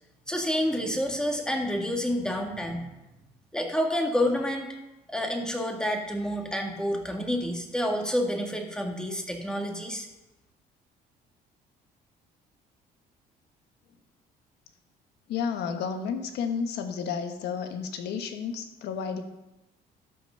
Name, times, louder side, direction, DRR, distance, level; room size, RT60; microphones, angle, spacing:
voice 1, 0.3-2.9 3.5-4.7 5.1-10.1, equal, 5° left, 2 dB, 1.8 m, -28 dB
voice 2, 15.3-19.2, left 6 dB, 80° left, 7 dB, 1.3 m, -31 dB
13.0 x 6.0 x 5.5 m, 0.99 s
cardioid pair, 110°, 17 cm